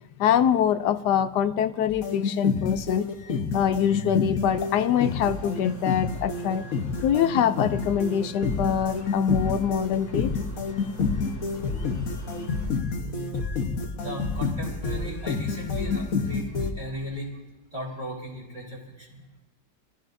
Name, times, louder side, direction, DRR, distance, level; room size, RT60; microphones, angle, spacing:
voice 1, 0.2-3.1 3.5-6.6 7.0-10.3, left 9 dB, 75° left, 11 dB, 1.2 m, -24 dB
sound 1, 1.9-16.7, left 4 dB, 55° left, 1.4 m, -29 dB
sound 2, 4.5-12.7, right 1 dB, 10° right, 2.7 m, -43 dB
voice 2, 11.9-12.4 12.8-13.2 14.0-17.3 17.7-19.2, equal, 25° right, -7 dB, 4.0 m, -37 dB
24.0 x 15.0 x 2.7 m, 1.1 s
omnidirectional pair, 1.8 m